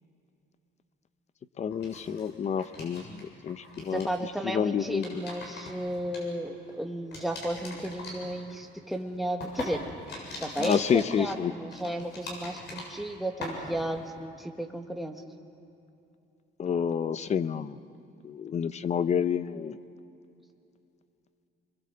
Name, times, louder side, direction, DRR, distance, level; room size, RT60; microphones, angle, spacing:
voice 1, 1.6-4.1 4.4-5.2 10.6-11.5 16.6-17.7 18.2-19.8, left 7 dB, 35° left, 14 dB, 0.7 m, -29 dB
sound 1, 1.7-3.2 3.5-4.2 4.8-6.7 7.1-13.1 13.4-14.0, left 2 dB, 65° left, 7.4 m, -41 dB
voice 2, 3.9-9.8 10.4-15.1, right 1 dB, ahead, 3 dB, 1.6 m, -34 dB
28.0 x 22.0 x 7.9 m, 2.7 s
cardioid pair, 145°, 19 cm